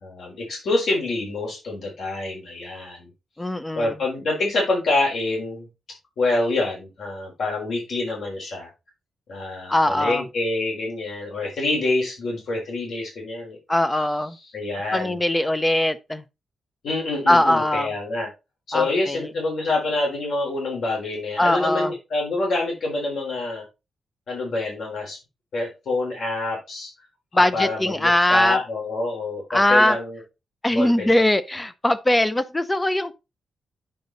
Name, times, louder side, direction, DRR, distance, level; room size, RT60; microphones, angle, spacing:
voice 1, 0.0-3.1 3.8-5.7 6.2-8.7 9.3-13.6 14.0-14.1 14.5-15.2 16.8-18.3 18.7-23.6 24.3-25.2 25.5-26.9 27.3-30.2 30.7-31.1, left 2 dB, 70° left, 3.9 m, -26 dB
voice 2, 3.4-3.9 9.7-10.2 13.7-14.4 14.9-16.2 17.3-17.9 18.7-19.3 21.4-21.9 27.3-28.6 29.5-30.0 30.6-33.1, left 1 dB, 10° left, 0.6 m, -21 dB
8.6 x 5.2 x 3.9 m
wide cardioid pair, 150°, 0 cm